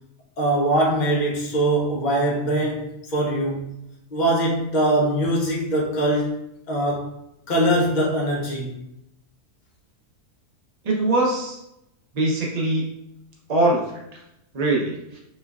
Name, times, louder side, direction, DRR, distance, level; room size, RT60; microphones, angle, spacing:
voice 1, 0.4-3.8 4.1-7.1 7.5-8.8, right 1 dB, 75° left, -3 dB, 0.4 m, -22 dB
voice 2, 10.8-11.6 12.1-12.9 13.5-13.8 14.5-15.2, right 2 dB, 60° right, -3 dB, 0.4 m, -22 dB
4.2 x 2.3 x 2.3 m, 0.82 s
omnidirectional pair, 1.7 m